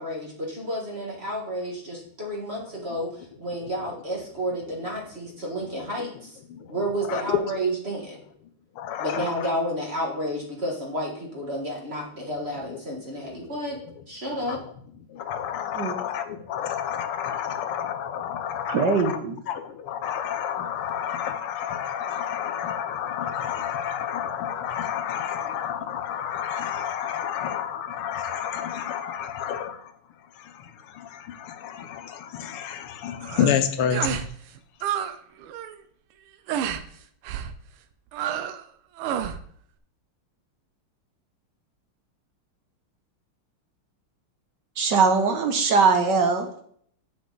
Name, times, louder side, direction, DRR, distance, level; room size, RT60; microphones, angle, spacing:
voice 1, 0.0-3.1 3.4-6.4 6.7-8.2 9.0-13.8 14.0-14.6, right 1 dB, 30° right, 1.6 m, -31 dB
voice 2, 7.1-7.5 8.8-9.5 13.4-13.6 14.5-14.6 15.1-19.2 19.5-29.9 30.4-34.2, left 8 dB, 85° left, 1.7 m, -30 dB
voice 3, 18.7-19.4 44.8-46.5, right 4 dB, 65° right, 1.3 m, -21 dB
sound 1, 33.2-33.6 33.9-34.3 34.6-35.1 35.4-35.8 36.5-36.8 37.2-37.5 38.1-38.6 39.0-39.4, right 9 dB, 85° right, 1.5 m, -29 dB
7.8 x 6.3 x 3.9 m
omnidirectional pair, 2.4 m